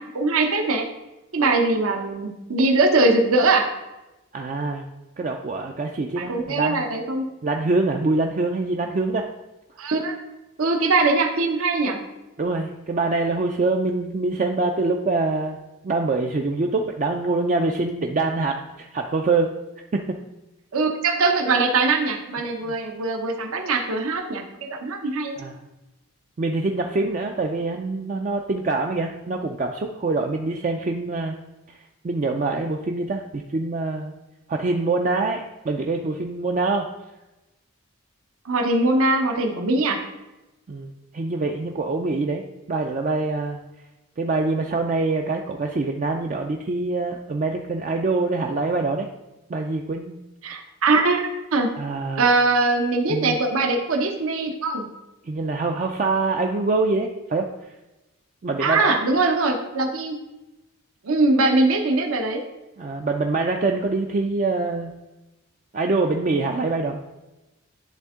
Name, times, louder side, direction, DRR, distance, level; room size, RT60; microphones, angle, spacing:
voice 1, 0.1-0.8 1.3-3.7 6.2-7.2 9.8-10.1 10.6-12.0 20.7-25.3 38.4-40.0 50.4-51.7 52.2-54.9 58.6-60.2 61.0-62.4, right 3 dB, 70° right, 3 dB, 0.8 m, -21 dB
voice 2, 4.3-4.9 5.2-6.8 7.4-9.3 12.4-15.6 15.8-19.5 19.9-20.0 22.6-22.7 25.4-25.6 26.4-31.4 31.7-31.8 32.0-34.1 34.5-36.9 40.7-43.6 44.2-49.1 49.5-50.1 51.8-52.3 53.1-53.4 55.2-57.5 58.4-58.9 62.8-64.9 65.7-67.0, right 3 dB, 35° right, 2 dB, 0.3 m, -25 dB
10.5 x 3.6 x 3.6 m, 1.0 s
head